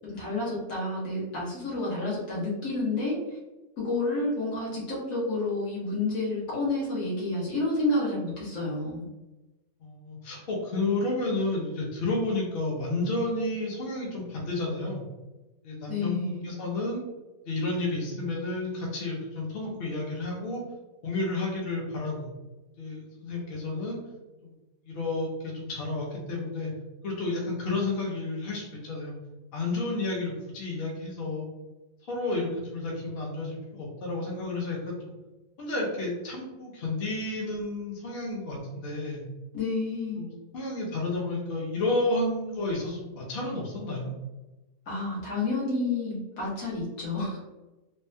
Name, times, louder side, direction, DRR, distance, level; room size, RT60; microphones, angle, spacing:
voice 1, 0.0-3.4 3.8-9.0 15.9-16.5 39.5-40.2 44.9-47.4, left 2 dB, 75° left, -6 dB, 1.5 m, -30 dB
voice 2, 9.8-15.0 15.6-17.0 17.4-20.6 21.0-22.3 22.8-24.0 24.4-24.5 24.8-26.7 27.0-29.2 29.5-31.5 32.1-35.1 35.6-39.2 40.2-44.1, left 2 dB, 50° left, -2 dB, 0.8 m, -31 dB
3.3 x 2.1 x 2.6 m, 1.1 s
omnidirectional pair, 1.5 m